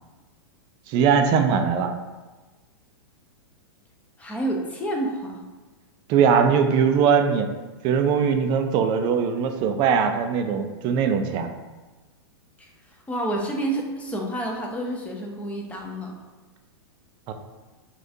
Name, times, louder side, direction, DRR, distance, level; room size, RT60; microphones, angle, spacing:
voice 1, 0.9-1.9 6.1-7.5 7.8-11.5 17.3-17.4, right 6 dB, 30° right, 6 dB, 0.4 m, -21 dB
voice 2, 4.2-5.4 12.6-16.1, right 1 dB, 10° left, 0 dB, 0.6 m, -29 dB
6.4 x 2.4 x 2.7 m, 1.2 s
hypercardioid pair, 140°, 14 cm